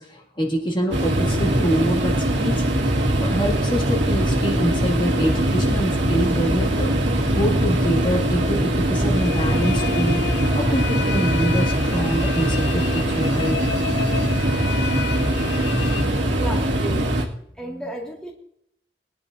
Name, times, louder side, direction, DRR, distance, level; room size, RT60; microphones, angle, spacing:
voice 1, 0.0-2.6 3.2-10.2 10.5-13.6 17.7-17.9, equal, 25° left, -3 dB, 2.1 m, -25 dB
sound 1, 0.9-17.2, right 1 dB, 85° right, 2.1 m, -21 dB
sound 2, 9.1-16.9, left 7 dB, 70° left, 0.6 m, -32 dB
voice 2, 16.3-17.0 17.6-18.3, right 1 dB, 5° left, -3 dB, 2.0 m, -33 dB
21.0 x 10.5 x 2.6 m, 0.72 s
head